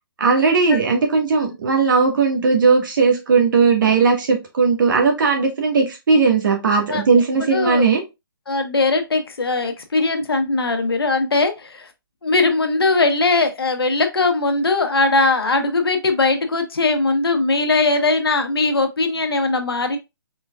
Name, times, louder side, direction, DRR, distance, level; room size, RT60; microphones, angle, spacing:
voice 1, 0.2-8.0, right 4 dB, 60° right, 1.5 m, -17 dB
voice 2, 7.5-7.9 8.5-11.9 12.2-20.0, left 3 dB, 90° left, 1.0 m, -20 dB
4.4 x 3.4 x 2.3 m
hypercardioid pair, 150°, 12 cm